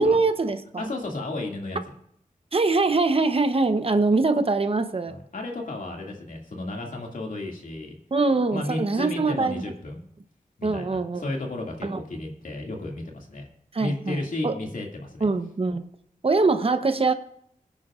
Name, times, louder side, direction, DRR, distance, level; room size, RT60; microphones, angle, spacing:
voice 1, 0.0-0.8 2.5-5.2 8.1-9.6 10.6-11.2 11.8-12.0 13.7-14.6 15.2-15.9 16.2-17.1, right 3 dB, 45° right, 9 dB, 0.8 m, -23 dB
voice 2, 0.8-1.8 5.1-7.9 8.5-10.0 10.6-13.5 13.8-15.3, left 2 dB, 70° left, 0 dB, 2.3 m, -33 dB
22.5 x 10.0 x 2.5 m, 0.72 s
wide cardioid pair, 85°, 14 cm